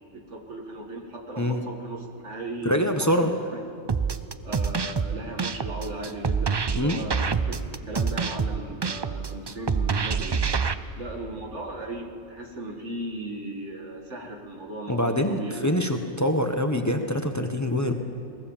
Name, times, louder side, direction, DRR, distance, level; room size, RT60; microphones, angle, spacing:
voice 1, 0.1-3.3 4.4-10.4 10.9-15.6, right 1 dB, 80° right, 2 dB, 2.4 m, -37 dB
voice 2, 2.6-3.4 6.7-7.0 14.9-17.9, equal, 15° left, 5 dB, 1.1 m, -24 dB
sound 1, 3.9-10.7, right 5 dB, 35° right, 0.4 m, -27 dB
22.5 x 19.5 x 7.3 m, 2.6 s
omnidirectional pair, 1.2 m